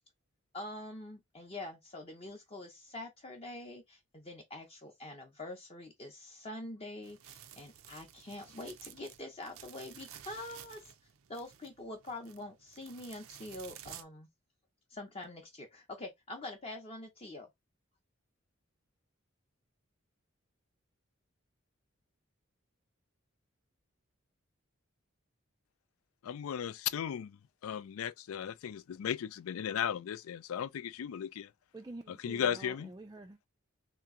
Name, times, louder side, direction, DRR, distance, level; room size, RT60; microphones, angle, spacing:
voice 1, 0.5-10.9 11.3-14.3 14.9-17.5, left 2 dB, 30° left, 0.6 m, -45 dB
sound 1, 7.0-14.0, right 10 dB, 80° right, 0.5 m, -53 dB
voice 2, 26.2-27.4 27.6-31.5 32.1-32.9, left 8 dB, 85° left, 0.4 m, -36 dB
voice 3, 31.7-33.5, right 2 dB, 20° right, 0.3 m, -48 dB
3.3 x 2.9 x 3.6 m
head